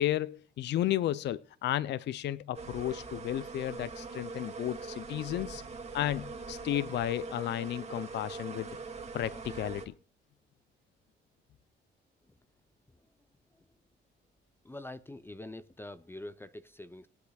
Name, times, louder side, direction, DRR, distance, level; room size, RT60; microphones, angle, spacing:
voice 1, 0.0-5.6 5.9-8.7 9.1-9.9, left 12 dB, 65° left, 0.4 m, -33 dB
sound 1, 2.5-9.9, right 4 dB, 35° right, 2.3 m, -42 dB
voice 2, 14.6-17.1, left 1 dB, 10° left, 0.5 m, -45 dB
21.5 x 8.2 x 2.3 m
cardioid pair, 90°, 20 cm